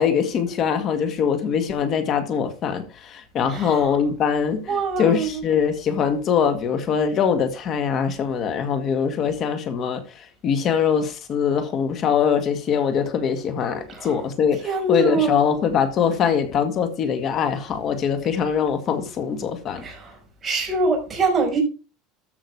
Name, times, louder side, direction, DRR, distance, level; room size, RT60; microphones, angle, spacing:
voice 1, 0.0-19.8, left 7 dB, 35° left, 1.9 m, -23 dB
voice 2, 3.5-3.8 4.7-5.4 14.0-14.1 14.6-15.3 19.8-20.1 20.4-21.6, right 3 dB, 20° right, 5.6 m, -23 dB
14.0 x 6.3 x 4.8 m
supercardioid pair, 150°, 0 cm